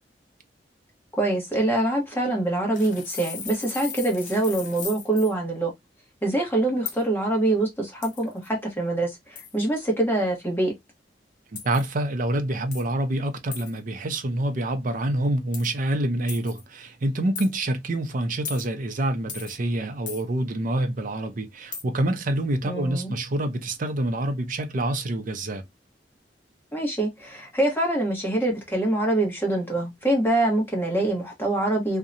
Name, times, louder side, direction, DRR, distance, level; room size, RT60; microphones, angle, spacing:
voice 1, 1.2-5.7 6.2-10.7 22.6-23.1 26.7-32.0, right 2 dB, 15° left, 1.0 m, -24 dB
sound 1, 2.7-5.3 6.9-7.0 8.0-8.5 9.4-9.6 11.5-11.9 12.7-12.9 13.5-13.8 15.5-15.7 16.3-16.6 17.3-17.5 18.4-18.7 19.3-19.6 20.1-20.2 21.7-21.8, left 6 dB, 45° left, 0.7 m, -37 dB
voice 2, 11.6-25.6, right 1 dB, 50° right, 0.5 m, -27 dB
2.7 x 2.1 x 2.5 m
head